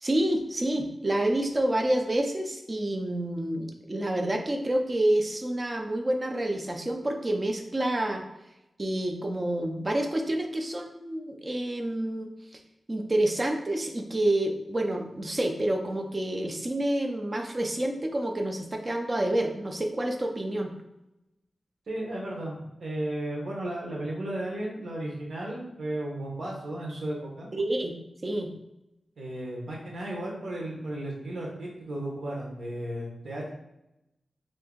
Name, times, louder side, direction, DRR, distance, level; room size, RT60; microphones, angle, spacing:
voice 1, 0.0-8.2 8.8-12.3 12.9-20.7 27.5-27.9 28.2-28.5, right 1 dB, 25° right, 3 dB, 0.4 m, -28 dB
voice 2, 21.9-27.5 29.2-33.5, right 1 dB, 75° right, -3 dB, 1.0 m, -34 dB
2.6 x 2.6 x 3.7 m, 0.89 s
wide cardioid pair, 135°, 0 cm